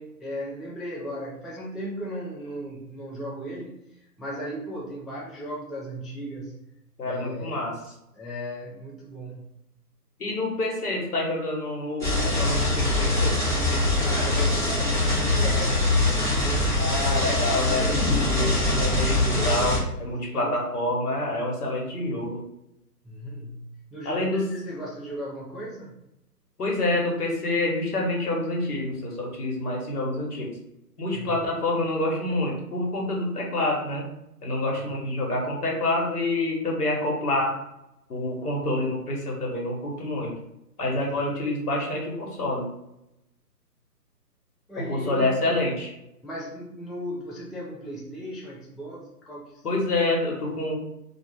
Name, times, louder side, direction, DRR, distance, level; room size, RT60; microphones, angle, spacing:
voice 1, 0.0-6.5 7.0-7.6 8.1-9.5 14.0-16.7 18.3-18.7 20.2-20.6 23.0-26.0 31.1-31.4 34.8-35.0 40.9-41.2 44.7-45.3 46.2-49.6, equal, ahead, -4 dB, 0.3 m, -37 dB
voice 2, 7.0-7.7 10.2-13.4 16.8-22.4 24.0-24.4 26.6-30.5 31.0-34.0 34.4-37.5 38.1-40.3 40.8-42.7 44.9-45.9 49.6-50.8, left 2 dB, 65° left, -1 dB, 1.1 m, -27 dB
sound 1, 12.0-19.8, left 2 dB, 30° left, 0.6 m, -23 dB
2.4 x 2.3 x 3.4 m, 0.84 s
hypercardioid pair, 175°, 48 cm